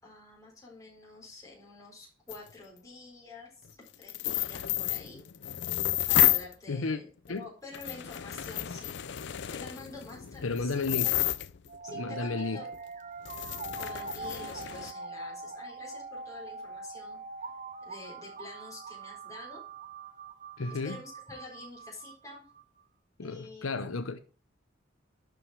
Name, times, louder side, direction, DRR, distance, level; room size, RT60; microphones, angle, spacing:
voice 1, 0.0-5.2 5.7-5.8 6.1-7.1 7.3-11.1 11.8-12.8 13.8-17.5 17.9-19.6 20.7-22.4 23.2-23.8, left 3 dB, 15° left, 3.9 m, -48 dB
sound 1, 2.3-2.4 4.0-6.5 7.3-7.4 7.7-11.8 12.7-12.8 13.3-14.9, left 14 dB, 55° left, 0.5 m, -31 dB
voice 2, 6.7-7.0 7.3-7.5 10.4-11.2 11.9-12.6 20.6-21.0 23.2-24.2, left 3 dB, 80° left, 0.8 m, -32 dB
sound 2, 11.7-22.6, right 3 dB, 40° right, 0.6 m, -43 dB
11.5 x 5.2 x 4.7 m
head